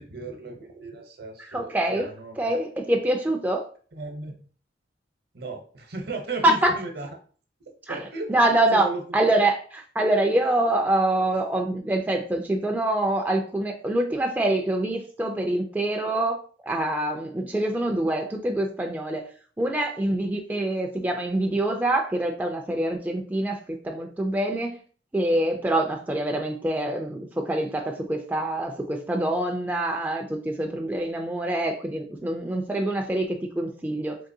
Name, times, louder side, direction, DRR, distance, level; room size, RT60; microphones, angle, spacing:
voice 1, 0.0-2.6 3.9-4.4 5.3-7.1 7.9-8.3 8.7-9.3, right 3 dB, 60° right, 3 dB, 0.8 m, -36 dB
voice 2, 1.5-2.1 2.4-3.6 6.4-6.7 7.9-8.0 8.3-8.9 9.1-19.2 19.6-24.8 25.1-34.2, right 1 dB, 10° right, 2 dB, 0.3 m, -25 dB
3.7 x 2.9 x 2.6 m, 0.43 s
head